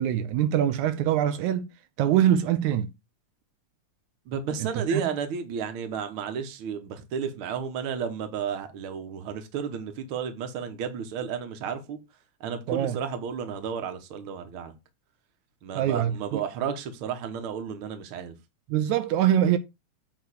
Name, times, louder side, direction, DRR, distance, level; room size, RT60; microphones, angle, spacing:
voice 1, 0.0-1.7 2.0-2.9 4.7-5.0 12.7-13.0 15.8-16.4 18.7-19.6, right 10 dB, 85° right, 2.0 m, -24 dB
voice 2, 4.3-12.0 12.4-14.7 15.6-18.3, right 7 dB, 55° right, 1.7 m, -32 dB
8.6 x 3.2 x 6.4 m
omnidirectional pair, 3.5 m